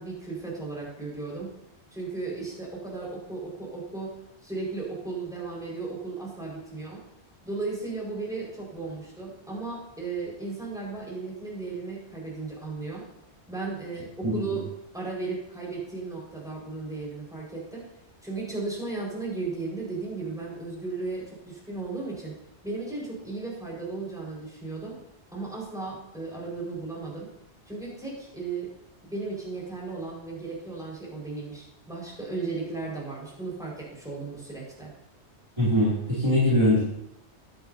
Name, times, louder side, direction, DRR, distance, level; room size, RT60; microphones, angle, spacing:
voice 1, 0.0-1.5 1.9-4.2 4.4-7.0 7.4-13.0 13.5-17.9 18.2-22.3 22.6-25.0 25.3-27.3 27.6-28.7 29.1-34.9, right 3 dB, 5° right, -5 dB, 5.0 m, -35 dB
voice 2, 35.6-36.8, left 1 dB, 25° right, -8 dB, 2.7 m, -22 dB
15.0 x 10.5 x 2.8 m, 0.81 s
omnidirectional pair, 1.2 m